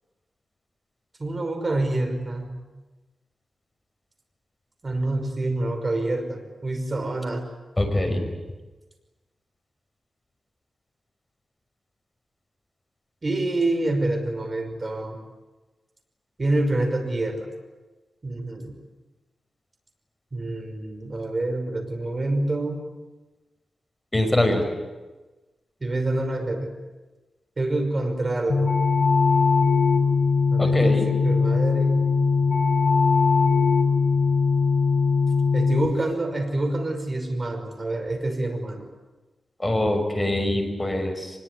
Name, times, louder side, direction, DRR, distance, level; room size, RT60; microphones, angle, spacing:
voice 1, 1.2-2.6 4.8-7.5 13.2-15.2 16.4-17.5 18.2-18.8 20.3-22.8 25.8-26.7 27.6-28.7 30.5-32.2 35.5-38.9, right 2 dB, 35° right, 5 dB, 5.6 m, -27 dB
voice 2, 7.8-8.2 24.1-24.7 30.6-31.1 39.6-41.3, left 1 dB, 15° left, 4 dB, 6.0 m, -23 dB
sound 1, 28.5-35.9, left 4 dB, 35° left, 5.1 m, -20 dB
24.5 x 21.5 x 9.8 m, 1.2 s
wide cardioid pair, 95°, 0 cm